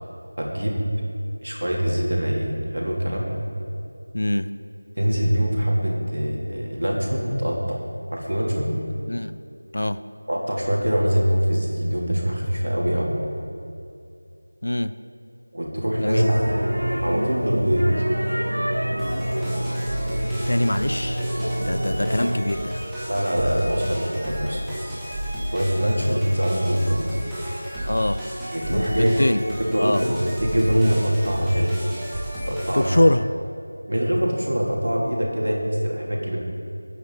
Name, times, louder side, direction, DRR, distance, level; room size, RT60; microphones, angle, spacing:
voice 1, 0.4-0.8 1.4-3.3 5.0-7.8 8.1-8.7 10.3-13.1 15.5-16.7 17.0-17.9 23.1-24.6 25.5-27.0 28.5-31.7 32.5-32.9 33.9-36.4, equal, 60° right, -2 dB, 3.1 m, -23 dB
voice 2, 4.1-4.5 9.1-9.4 9.7-10.0 14.6-14.9 16.0-16.3 20.5-21.2 21.6-22.9 27.9-28.2 28.7-29.4 29.8-30.0 32.7-33.2, left 1 dB, 50° left, 12 dB, 0.5 m, -23 dB
sound 1, 16.1-22.4, equal, 85° left, 2.6 m, -26 dB
sound 2, 19.0-33.0, equal, ahead, 1.1 m, -32 dB
19.5 x 9.3 x 4.1 m, 2.6 s
figure-of-eight pair, 170°, 0 cm